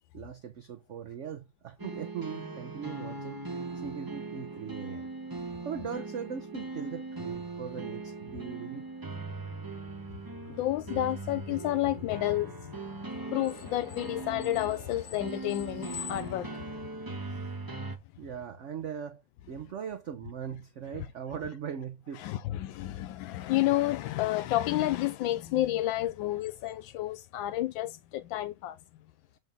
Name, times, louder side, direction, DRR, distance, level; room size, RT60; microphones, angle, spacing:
voice 1, 0.1-3.4 3.7-5.1 5.6-8.9 18.2-19.2 19.5-22.4, right 7 dB, 65° right, 0.7 m, -39 dB
sound 1, 1.8-18.0, right 3 dB, 15° right, 1.0 m, -40 dB
voice 2, 10.5-12.8 13.1-16.8 22.2-28.8, left 15 dB, 85° left, 1.4 m, -30 dB
7.8 x 3.7 x 5.4 m
omnidirectional pair, 2.1 m